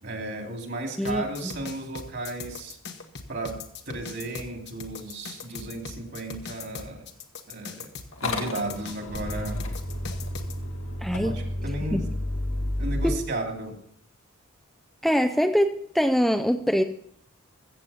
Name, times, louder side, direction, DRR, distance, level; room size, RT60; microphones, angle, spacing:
voice 1, 0.0-2.8 3.3-3.6 3.9-7.1 7.5-7.9 8.2-9.6 11.1-12.0 12.8-13.7, right 2 dB, 55° right, 3 dB, 2.7 m, -34 dB
sound 1, 1.0-10.5, left 4 dB, 55° left, 1.4 m, -40 dB
Motor vehicle (road) / Engine starting, 8.1-13.2, left 1 dB, 85° left, 1.9 m, -31 dB
voice 2, 11.0-11.4 11.9-12.1 13.0-13.1 15.0-16.8, equal, ahead, 6 dB, 0.5 m, -23 dB
15.0 x 7.8 x 5.6 m, 0.66 s
head